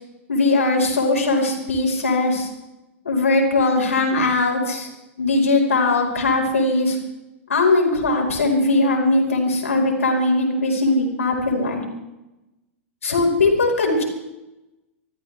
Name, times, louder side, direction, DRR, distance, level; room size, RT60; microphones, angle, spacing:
voice 1, 0.3-2.5 3.0-4.9 5.2-7.0 7.5-11.8 13.0-14.0, left 2 dB, 85° left, 0 dB, 4.7 m, -20 dB
26.5 x 14.0 x 3.4 m, 0.98 s
hypercardioid pair, 105°, 7 cm